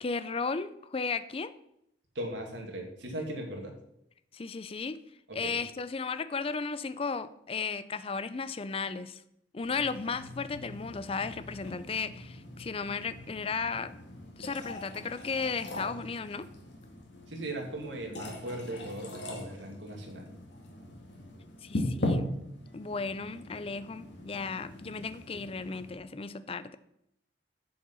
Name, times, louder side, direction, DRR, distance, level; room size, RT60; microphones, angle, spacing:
voice 1, 0.0-1.5 4.3-5.0 5.3-9.2 9.5-14.0 14.4-16.5 21.6-22.3 22.7-26.8, left 4 dB, 30° left, 13 dB, 0.4 m, -35 dB
voice 2, 2.1-3.7 5.3-5.6 17.3-20.3, right 1 dB, 90° right, 1 dB, 2.2 m, -38 dB
sound 1, 9.6-25.9, left 1 dB, 85° left, 1.9 m, -40 dB
7.8 x 7.0 x 5.4 m, 0.77 s
head